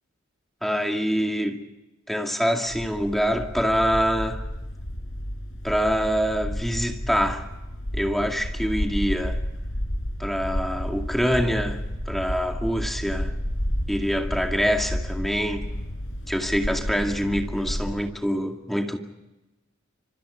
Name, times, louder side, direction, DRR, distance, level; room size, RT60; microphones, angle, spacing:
voice 1, 0.6-1.6 2.1-4.4 5.6-7.5 7.9-9.4 10.2-13.3 13.9-15.7 16.3-19.0, equal, ahead, 2.2 m, -25 dB
sound 1, 2.7-18.1, equal, 65° left, 4.3 m, -31 dB
29.0 x 26.5 x 4.9 m
head